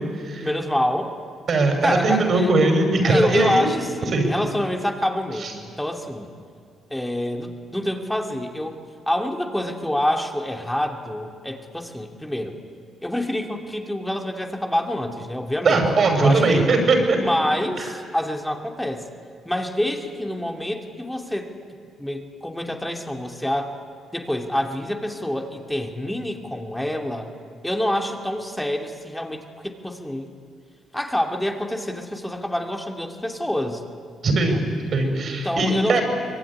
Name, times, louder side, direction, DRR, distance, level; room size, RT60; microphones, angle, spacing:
voice 1, 0.4-1.1 1.8-2.5 3.0-6.3 6.9-8.8 9.1-12.6 13.0-15.8 16.2-16.7 17.2-19.0 19.4-21.5 22.0-23.7 24.1-27.3 27.6-30.3 30.9-33.8 34.5-34.6 35.3-36.0, left 1 dB, 5° left, 3 dB, 2.6 m, -26 dB
voice 2, 1.5-3.7 4.1-4.3 5.4-5.5 15.6-17.2 34.2-34.6 34.9-36.0, right 3 dB, 50° right, 4 dB, 6.0 m, -20 dB
25.0 x 21.5 x 9.9 m, 2.2 s
cardioid pair, 90°, 0 cm